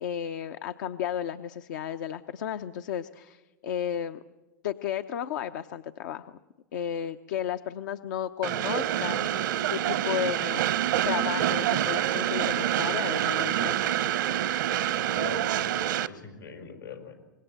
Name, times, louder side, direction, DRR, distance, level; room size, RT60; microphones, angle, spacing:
voice 1, 0.0-4.2 4.6-6.3 6.7-9.4 9.7-10.8 11.0-13.9, left 9 dB, 70° left, 9 dB, 0.8 m, -33 dB
Train, 8.4-16.1, right 12 dB, 75° right, 0.9 m, -27 dB
voice 2, 15.1-17.1, left 7 dB, 90° left, 3 dB, 5.6 m, -43 dB
25.0 x 21.0 x 8.1 m, 1.1 s
hypercardioid pair, 95°, 10 cm